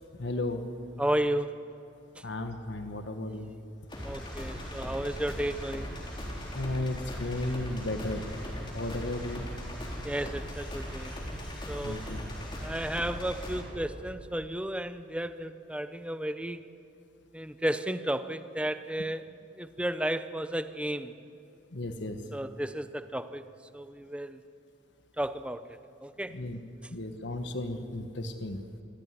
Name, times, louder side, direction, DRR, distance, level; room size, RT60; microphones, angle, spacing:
voice 1, 0.2-0.7 2.2-3.5 6.5-8.2 8.7-9.4 11.8-12.2 21.7-22.2 26.3-26.6 26.9-28.6, left 2 dB, 60° left, 7 dB, 1.4 m, -34 dB
voice 2, 1.0-1.7 2.2-2.3 4.0-5.9 10.0-11.2 11.7-12.0 12.6-16.7 17.3-21.2 22.3-23.4 23.7-24.4 25.2-26.4, right 1 dB, 5° right, 11 dB, 0.7 m, -33 dB
sound 1, 3.9-13.6, equal, 25° left, 4.0 m, -38 dB
25.5 x 15.0 x 9.7 m, 2.7 s
head